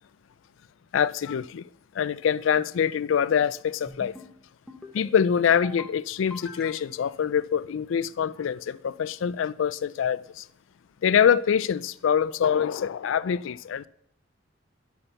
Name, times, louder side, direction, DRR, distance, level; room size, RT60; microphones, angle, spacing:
voice 1, 0.9-1.7 1.9-4.1 4.9-10.5 11.0-13.9, left 8 dB, 80° left, 0.3 m, -25 dB
sound 1, 3.9-4.3 4.7-5.1 5.5-5.9 6.3-7.1, left 1 dB, ahead, 1.1 m, -44 dB
9.9 x 5.8 x 6.6 m
head